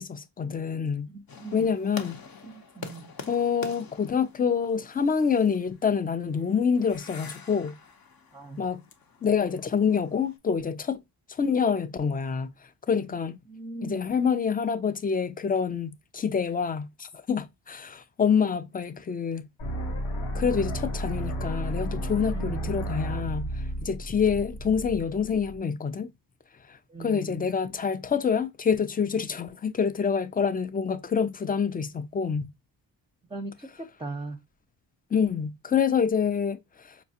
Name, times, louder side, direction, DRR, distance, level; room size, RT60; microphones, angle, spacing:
voice 1, 0.0-1.1 1.5-2.2 3.3-7.8 8.6-8.8 9.2-11.0 11.3-12.5 12.9-13.4 13.8-19.5 20.3-26.1 26.7-32.5 35.1-37.0, left 6 dB, 20° left, 0.3 m, -27 dB
voice 2, 1.1-1.7 2.4-3.1 8.3-8.6 13.0-13.1 13.5-14.1 22.3-22.8 26.9-27.5 33.3-34.4, right 2 dB, 10° right, 0.7 m, -39 dB
sound 1, 1.3-10.4, left 5 dB, 50° left, 0.8 m, -46 dB
sound 2, 19.6-25.6, equal, 90° left, 1.2 m, -32 dB
4.9 x 2.3 x 2.7 m
cardioid pair, 70°, 47 cm